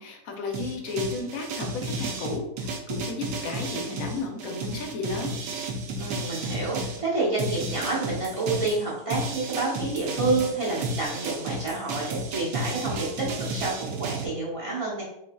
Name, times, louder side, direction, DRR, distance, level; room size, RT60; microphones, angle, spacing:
voice 1, 0.0-5.4, left 3 dB, 65° left, 2 dB, 0.9 m, -33 dB
sound 1, 0.5-7.0 7.4-14.3, right 2 dB, 85° right, 1.3 m, -32 dB
voice 2, 6.0-15.0, right 3 dB, 35° right, -6 dB, 0.5 m, -29 dB
3.8 x 3.8 x 2.2 m, 0.81 s
omnidirectional pair, 1.9 m